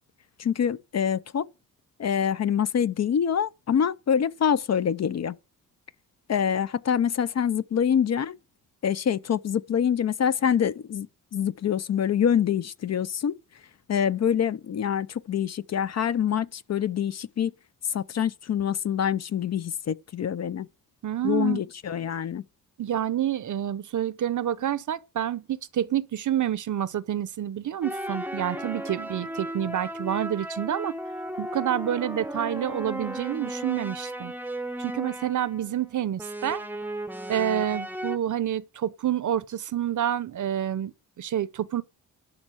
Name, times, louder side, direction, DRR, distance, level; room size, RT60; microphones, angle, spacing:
voice 1, 0.4-1.5 2.0-5.3 6.3-8.4 8.8-11.1 11.3-13.4 13.9-17.5 17.9-20.7 21.2-22.4, left 8 dB, 45° left, 0.6 m, -25 dB
voice 2, 21.0-21.6 22.8-30.9 31.4-34.3 34.8-36.6 37.3-41.8, right 10 dB, 55° right, 0.8 m, -28 dB
sound 1, 27.8-35.8 36.2-38.2, right 1 dB, 5° right, 0.7 m, -35 dB
11.5 x 5.4 x 6.4 m
cardioid pair, 75°, 36 cm